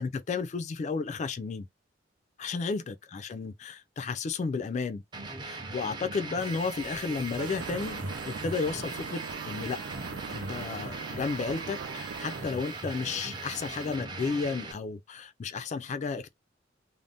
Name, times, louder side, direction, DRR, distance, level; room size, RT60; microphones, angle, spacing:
voice 1, 0.0-1.7 2.4-5.0 5.4-9.8 10.3-16.3, left 4 dB, 40° left, 0.3 m, -33 dB
sound 1, 5.1-14.7, right 3 dB, 25° right, 0.5 m, -39 dB
sound 2, 6.4-14.0, right 3 dB, 45° right, 0.9 m, -52 dB
sound 3, 7.4-12.5, right 5 dB, 70° right, 0.5 m, -41 dB
2.6 x 2.0 x 3.3 m
head